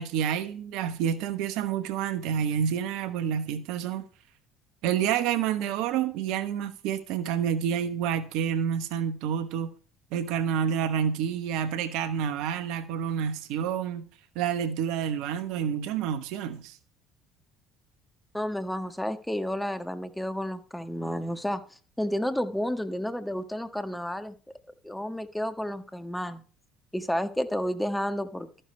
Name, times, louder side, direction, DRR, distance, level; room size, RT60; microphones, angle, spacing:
voice 1, 0.0-4.0 4.8-9.7 10.1-14.0 14.3-16.8, right 8 dB, 65° right, 1.1 m, -28 dB
voice 2, 18.3-24.3 24.8-26.4 26.9-28.5, equal, 5° left, 1.5 m, -31 dB
13.5 x 10.0 x 3.3 m
figure-of-eight pair, 60°, 0 cm